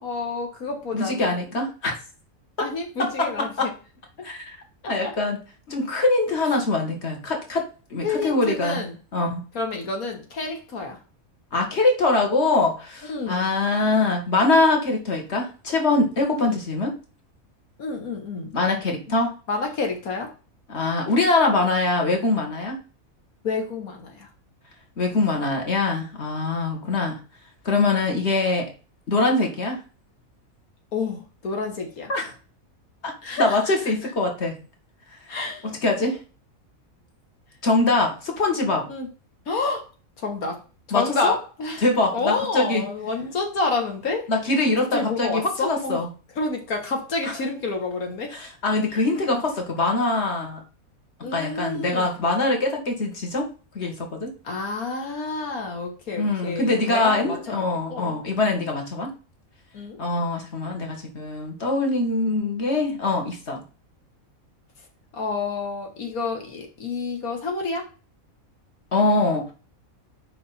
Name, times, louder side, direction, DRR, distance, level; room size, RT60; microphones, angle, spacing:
voice 1, 0.0-1.4 2.6-3.7 5.0-5.1 8.0-9.0 9.5-11.0 13.1-13.5 16.3-16.6 17.8-18.5 19.5-20.3 23.4-24.3 26.8-26.9 30.9-32.1 33.2-33.6 35.3-35.7 38.9-39.1 39.5-39.8 40.2-40.6 41.0-41.8 42.1-44.3 44.9-46.0 46.4-48.3 51.2-52.1 54.4-57.6 57.9-58.4 59.7-60.0 65.2-67.9, left 3 dB, 85° left, 2 dB, 1.9 m, -29 dB
voice 2, 0.9-1.9 2.6-2.7 3.0-3.7 4.2-4.6 4.9-5.4 5.7-8.8 9.1-9.4 11.5-16.9 18.5-19.3 20.7-22.8 25.0-27.2 27.6-28.7 29.1-29.8 32.1-32.3 33.0-34.6 35.6-36.2 37.6-38.9 40.9-41.3 41.8-42.8 44.3-46.1 47.2-47.4 48.3-50.6 51.3-53.5 53.7-54.3 56.2-59.1 60.0-63.6 68.9-69.5, left 2 dB, 50° left, 2 dB, 2.2 m, -23 dB
6.7 x 5.4 x 4.3 m, 0.35 s
omnidirectional pair, 1.5 m